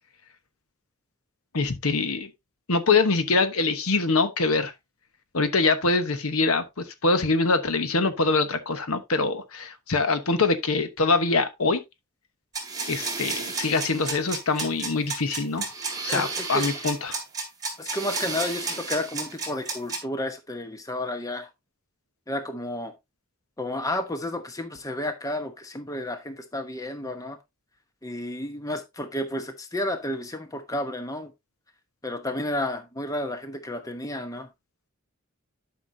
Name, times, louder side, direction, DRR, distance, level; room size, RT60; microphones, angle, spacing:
voice 1, 1.5-2.3 2.7-4.7 5.3-11.8 12.9-15.7 16.0-17.2, left 3 dB, 75° left, 1.1 m, -24 dB
sound 1, 12.5-20.0, right 4 dB, 15° right, 2.9 m, -32 dB
voice 2, 16.1-16.7 17.8-21.5 22.3-22.9 23.6-27.4 28.0-31.3 32.0-34.5, left 1 dB, 15° left, 1.0 m, -31 dB
11.5 x 5.9 x 2.7 m
head